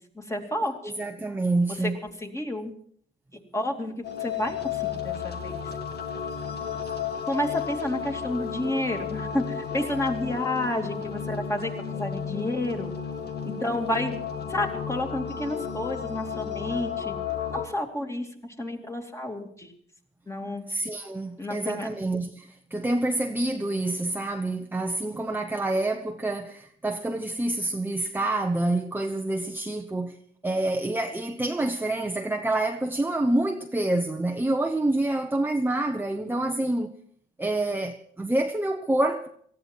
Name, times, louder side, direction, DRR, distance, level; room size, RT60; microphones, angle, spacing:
voice 1, 0.0-0.9 1.8-1.9 2.2-2.7 3.5-4.6 4.8-5.6 7.3-12.9 13.5-14.2 14.5-17.2 17.5-18.3 18.6-19.7 20.3-20.6 21.4-21.9, left 1 dB, 15° left, 2.6 m, -30 dB
voice 2, 0.8-2.0 20.7-30.2 30.4-36.9 37.4-39.3, right 2 dB, 10° right, 1.0 m, -27 dB
sound 1, 4.0-17.7, left 7 dB, 55° left, 2.0 m, -33 dB
18.5 x 14.5 x 4.6 m
cardioid pair, 90°, 20 cm